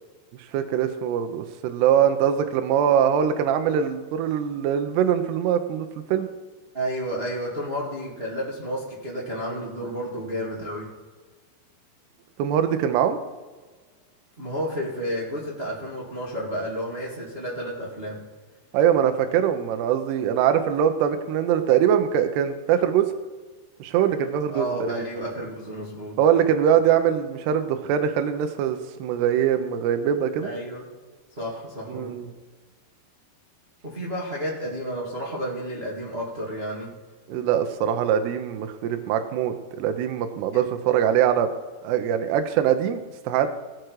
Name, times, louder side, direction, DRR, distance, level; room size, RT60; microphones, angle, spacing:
voice 1, 0.5-6.3 12.4-13.2 18.7-23.1 23.8-24.7 26.2-30.5 31.9-32.3 37.3-41.5 41.8-43.5, right 9 dB, 75° right, 7 dB, 2.7 m, -22 dB
voice 2, 6.7-10.9 14.4-18.2 24.5-26.2 30.4-30.8 31.4-32.3 33.8-36.9, equal, 35° right, -4 dB, 0.9 m, -31 dB
18.0 x 6.2 x 4.7 m, 1.4 s
omnidirectional pair, 5.3 m